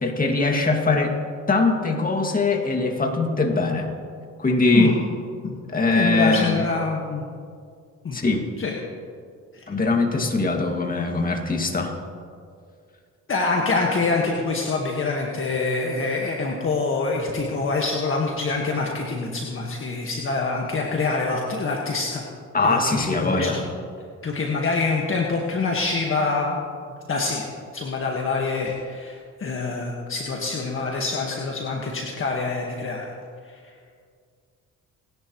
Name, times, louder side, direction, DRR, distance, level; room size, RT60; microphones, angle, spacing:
voice 1, 0.0-1.1 1.5-3.9 4.4-4.9 5.7-6.7 8.1-8.4 9.7-11.9 22.5-23.6, left 3 dB, 30° left, 2 dB, 2.3 m, -21 dB
voice 2, 4.7-5.0 5.4-5.6 5.9-7.2 8.0-8.2 8.6-8.7 9.5-9.7 13.3-22.2 22.6-23.6 24.2-26.6 27.1-27.4 27.7-33.1 33.5-33.7, left 3 dB, 45° left, -1 dB, 1.7 m, -25 dB
30.0 x 11.0 x 3.2 m, 2.2 s
cardioid pair, 90°, 30 cm